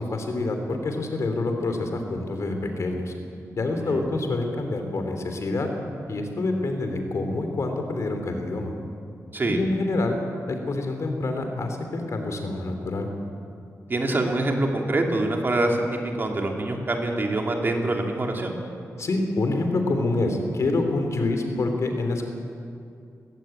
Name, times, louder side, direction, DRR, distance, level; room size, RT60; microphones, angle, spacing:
voice 1, 0.0-3.1 3.6-5.7 6.0-8.7 9.5-10.2 10.5-13.1 19.0-22.2, left 2 dB, 60° left, 5 dB, 2.9 m, -27 dB
voice 2, 13.9-18.5, right 2 dB, 35° right, 2 dB, 2.7 m, -25 dB
19.0 x 16.5 x 9.0 m, 2.5 s
wide cardioid pair, 140°, 6 cm